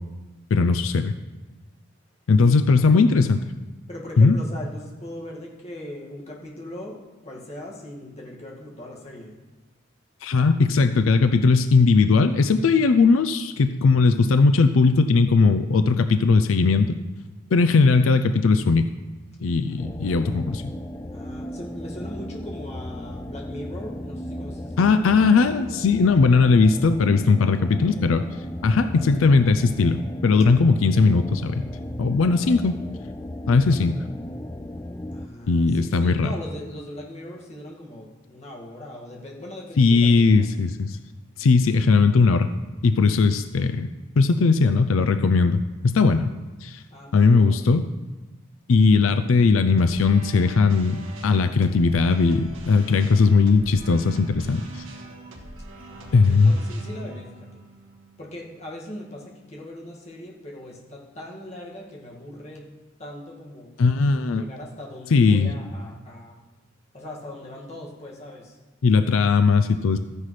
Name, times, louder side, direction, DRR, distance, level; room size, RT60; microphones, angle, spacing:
voice 1, 0.5-1.1 2.3-3.4 4.2-4.4 10.2-17.0 17.5-18.8 19.4-20.6 24.8-28.2 28.6-31.7 32.0-32.8 33.5-34.0 35.5-36.3 39.8-41.0 41.4-42.5 42.8-46.3 46.6-46.8 47.1-47.9 48.7-54.8 56.1-56.5 63.8-64.4 65.1-65.5 68.8-70.0, left 4 dB, 90° left, 9 dB, 0.5 m, -18 dB
voice 2, 2.4-2.8 3.9-9.4 19.6-19.8 21.1-25.1 35.1-40.5 46.9-47.8 55.9-57.6 58.2-62.7 63.0-63.7 64.3-66.4 66.9-68.6, left 1 dB, 35° left, -3 dB, 2.0 m, -39 dB
sound 1, 19.8-35.3, left 1 dB, 15° left, 0.3 m, -36 dB
sound 2, 49.8-58.9, right 2 dB, 85° right, 1.8 m, -43 dB
14.0 x 9.7 x 3.3 m, 1.2 s
head